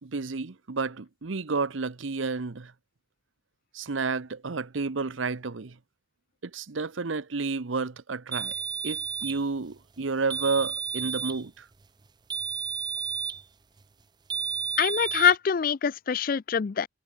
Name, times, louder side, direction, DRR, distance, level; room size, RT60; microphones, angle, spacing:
voice 1, 0.0-2.7 3.7-5.7 6.4-8.5 8.8-11.6, right 4 dB, 80° right, 0.9 m, -31 dB
sound 1, 8.3-9.4 10.3-11.4 12.3-13.4 14.3-15.4, right 7 dB, 20° right, 0.4 m, -32 dB
voice 2, 14.8-16.9, left 7 dB, 45° left, 0.4 m, -24 dB
head